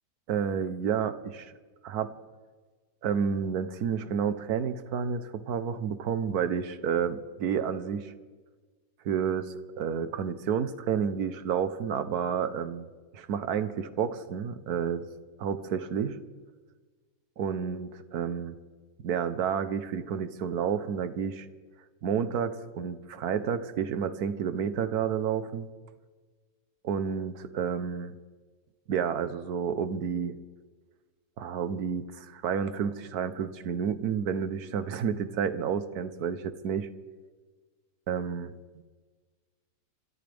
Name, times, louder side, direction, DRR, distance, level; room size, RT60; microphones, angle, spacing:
voice 1, 0.3-1.5 1.8-2.1 3.0-8.1 9.0-12.9 13.1-15.0 15.4-16.2 17.4-18.5 19.0-21.5 22.0-25.7 26.8-28.1 28.9-30.4 31.4-36.9 38.1-38.8, right 7 dB, 85° right, 11 dB, 1.4 m, -30 dB
27.0 x 14.0 x 3.5 m, 1.4 s
omnidirectional pair, 1.6 m